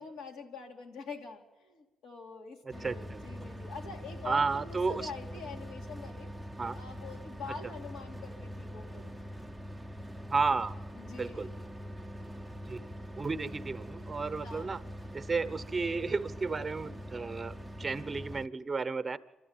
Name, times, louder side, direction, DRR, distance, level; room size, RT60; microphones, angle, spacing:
voice 1, 0.0-6.3 6.7-9.2 10.9-11.5 14.4-14.7, left 4 dB, 80° left, 2 dB, 2.8 m, -45 dB
sound 1, 2.7-18.5, equal, ahead, 0.7 m, -43 dB
voice 2, 2.8-3.2 4.2-5.1 6.6-6.8 10.3-10.9 11.2-11.5 12.7-12.9 13.2-14.8 15.1-19.2, right 4 dB, 25° right, 12 dB, 0.9 m, -32 dB
27.5 x 13.0 x 8.9 m, 1.2 s
cardioid pair, 90°, 0 cm